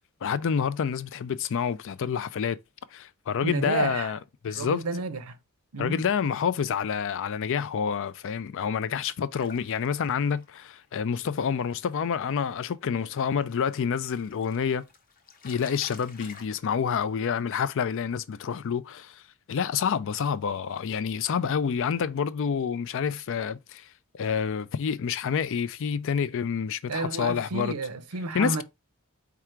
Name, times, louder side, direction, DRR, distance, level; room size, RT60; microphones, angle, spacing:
voice 1, 0.2-2.6 2.9-4.2 4.4-4.8 5.8-14.8 15.4-19.2 19.5-23.9 24.1-27.8 28.3-28.6, left 7 dB, 60° left, 0.4 m, -28 dB
voice 2, 3.4-4.1 4.5-5.4 5.7-6.1 26.9-28.6, right 3 dB, 85° right, 0.7 m, -31 dB
sound 1, 9.4-12.1 12.5-12.7 13.1-16.5, left 5 dB, 40° left, 0.8 m, -50 dB
4.7 x 2.4 x 4.4 m
head